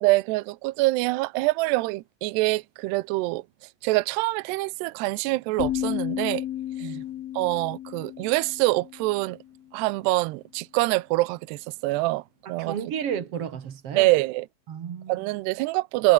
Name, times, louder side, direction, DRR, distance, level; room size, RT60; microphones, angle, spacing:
voice 1, 0.0-3.4 3.8-6.5 6.8-6.9 7.4-9.4 9.7-12.2 12.5-12.8 14.0-14.5 15.1-16.1, right 21 dB, 90° right, 2.4 m, -25 dB
sound 1, 5.6-9.5, left 12 dB, 65° left, 2.7 m, -33 dB
voice 2, 12.4-14.1 14.7-15.3, right 8 dB, 70° right, 1.4 m, -33 dB
omnidirectional pair, 5.8 m